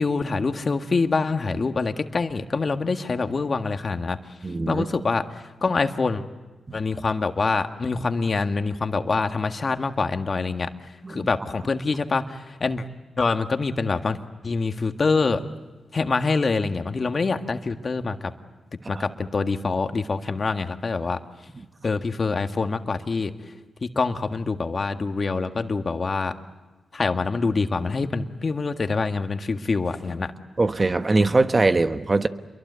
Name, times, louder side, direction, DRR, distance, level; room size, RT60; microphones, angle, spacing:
voice 1, 0.0-4.2 4.7-5.2 5.6-6.2 6.7-10.7 11.1-12.8 13.2-14.2 14.4-15.4 15.9-18.3 18.9-21.2 21.8-23.3 23.8-26.3 26.9-30.3, left 4 dB, 50° left, 7 dB, 1.7 m, -25 dB
voice 2, 4.4-4.9 6.7-6.8 11.0-11.3 18.9-19.0 30.6-32.3, right 3 dB, 35° right, 10 dB, 1.4 m, -22 dB
28.0 x 23.0 x 8.2 m, 1.2 s
supercardioid pair, 45°, 0 cm